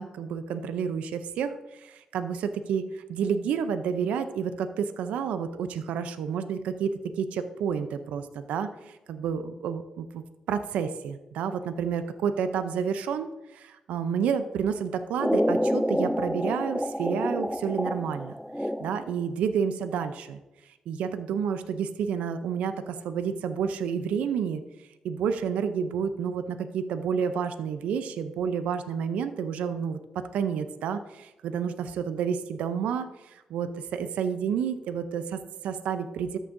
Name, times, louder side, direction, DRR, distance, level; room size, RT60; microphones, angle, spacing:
voice 1, 0.0-18.3 18.6-20.4 20.9-24.6 25.0-30.0 30.3-36.4, right 7 dB, 85° right, 10 dB, 0.5 m, -30 dB
sound 1, 15.2-19.2, equal, ahead, 0.4 m, -28 dB
13.0 x 6.1 x 2.6 m, 1.0 s
supercardioid pair, 55°, 2 cm